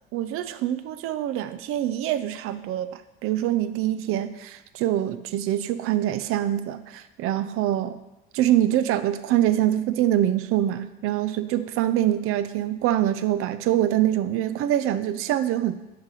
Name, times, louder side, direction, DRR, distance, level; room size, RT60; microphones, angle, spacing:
voice 1, 0.1-8.0 8.3-15.7, right 12 dB, 50° right, 12 dB, 0.5 m, -24 dB
5.8 x 3.2 x 5.6 m, 1.0 s
hypercardioid pair, 85°, 29 cm